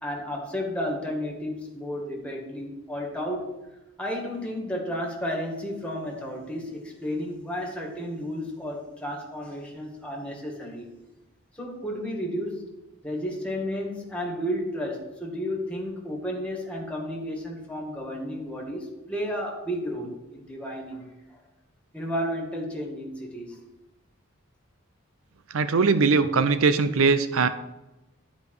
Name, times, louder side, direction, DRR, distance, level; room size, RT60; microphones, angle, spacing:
voice 1, 0.0-3.5 4.0-10.9 11.6-12.7 13.0-21.4 21.9-23.6, equal, 5° left, 0 dB, 2.0 m, -32 dB
voice 2, 25.5-27.5, right 4 dB, 85° right, 12 dB, 0.6 m, -21 dB
11.0 x 5.1 x 6.5 m, 0.99 s
head